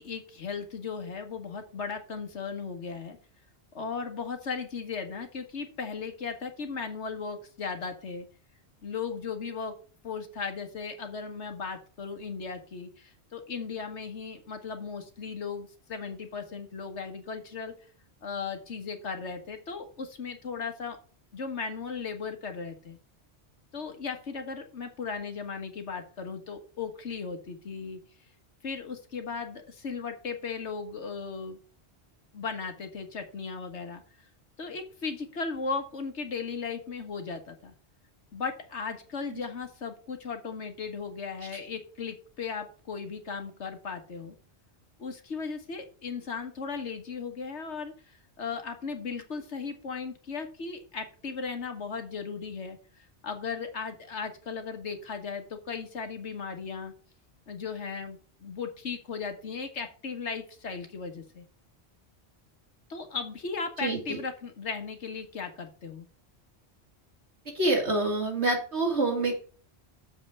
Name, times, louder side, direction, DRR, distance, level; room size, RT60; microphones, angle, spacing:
voice 1, 0.0-3.2 3.7-8.3 8.8-9.7 10.0-17.7 18.2-21.0 21.3-23.0 23.7-28.0 28.6-31.6 32.3-34.0 34.6-37.7 38.3-44.4 45.0-52.8 53.2-56.9 57.5-61.4 62.9-66.1, left 5 dB, 85° left, 6 dB, 1.8 m, -36 dB
voice 2, 63.8-64.2 67.5-69.4, right 2 dB, 75° right, 1 dB, 3.2 m, -27 dB
7.2 x 5.5 x 7.3 m, 0.39 s
omnidirectional pair, 1.1 m